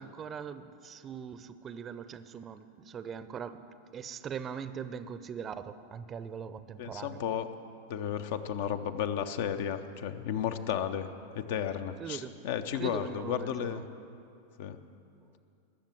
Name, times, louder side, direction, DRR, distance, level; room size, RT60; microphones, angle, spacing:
voice 1, 0.0-3.6 3.9-7.2 12.0-12.4 12.8-13.8, right 7 dB, 25° right, 12 dB, 0.6 m, -41 dB
voice 2, 6.8-7.5 7.9-11.1 11.3-13.8 14.6-14.8, left 9 dB, 50° left, 10 dB, 0.7 m, -33 dB
20.0 x 7.3 x 7.5 m, 2.6 s
figure-of-eight pair, 90°, 0 cm